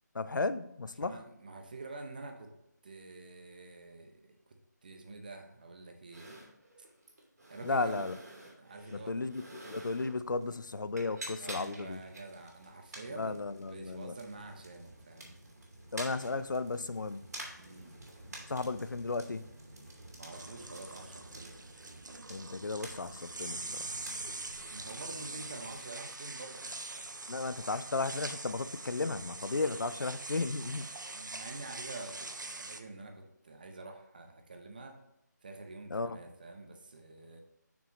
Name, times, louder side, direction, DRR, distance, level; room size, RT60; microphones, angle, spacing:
voice 1, 0.1-1.2 7.6-8.2 8.9-12.0 13.1-14.2 15.9-17.2 18.5-19.5 22.3-23.9 27.3-30.9 35.9-36.2, left 3 dB, 90° left, 13 dB, 0.5 m, -34 dB
voice 2, 1.0-2.5 2.8-4.2 4.8-6.4 7.5-8.1 8.6-9.2 11.4-15.3 17.6-17.9 20.2-21.6 24.7-27.7 30.9-35.0 35.4-37.4, right 2 dB, 30° right, 4 dB, 0.7 m, -47 dB
sound 1, 6.1-25.8, right 1 dB, 60° right, 2.7 m, -50 dB
sound 2, 20.3-32.8, right 3 dB, 85° right, 0.8 m, -43 dB
7.0 x 6.1 x 3.0 m, 0.85 s
figure-of-eight pair, 170°, 10 cm